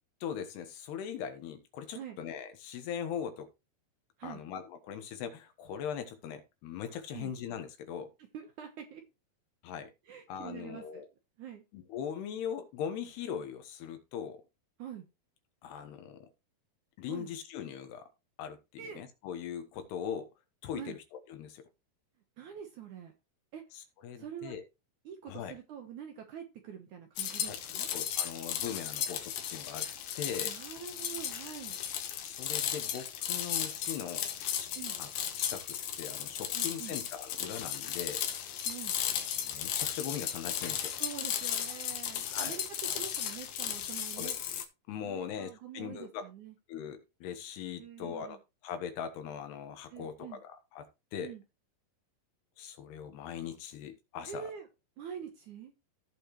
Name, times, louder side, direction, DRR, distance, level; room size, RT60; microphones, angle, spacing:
voice 1, 0.2-3.5 4.2-8.1 9.6-9.9 10.3-11.1 11.7-14.4 15.6-16.2 17.0-18.0 18.4-20.3 20.6-21.0 21.3-21.7 23.7-24.6 25.3-25.6 27.4-27.6 27.9-29.9 30.1-30.5 32.2-34.3 34.6-34.7 35.0-35.1 35.4-38.2 39.4-40.9 42.3-42.6 44.2-44.3 44.9-46.2 46.7-48.4 48.6-51.3 52.6-54.5, left 8 dB, 85° left, 7 dB, 3.4 m, -40 dB
voice 2, 8.3-9.0 10.1-11.0 11.4-11.6 14.8-15.1 17.1-17.3 18.8-19.0 20.7-21.0 22.4-23.1 23.5-23.6 24.2-24.5 25.1-27.9 29.9-30.0 30.4-31.8 34.8-35.0 36.5-37.0 38.7-39.0 41.0-42.6 42.9-44.4 45.0-46.6 47.8-48.4 49.9-50.4 51.2-51.4 54.3-54.7 55.0-55.7, right 8 dB, 65° right, 5 dB, 2.1 m, -45 dB
sound 1, 27.2-44.7, left 10 dB, 70° left, 2.7 m, -35 dB
16.0 x 5.4 x 3.1 m, 0.27 s
omnidirectional pair, 4.6 m